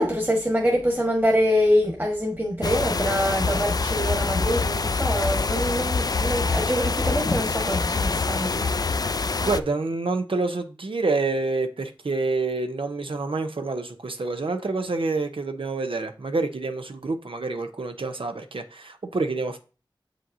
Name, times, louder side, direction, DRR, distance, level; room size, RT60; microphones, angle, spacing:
voice 1, 0.0-8.7, equal, 25° right, 1.4 m, -25 dB
sound 1, 2.6-9.6, left 4 dB, 45° left, 0.3 m, -25 dB
voice 2, 9.4-19.6, right 3 dB, 80° right, 0.7 m, -27 dB
7.4 x 5.2 x 2.7 m
wide cardioid pair, 50°, 9 cm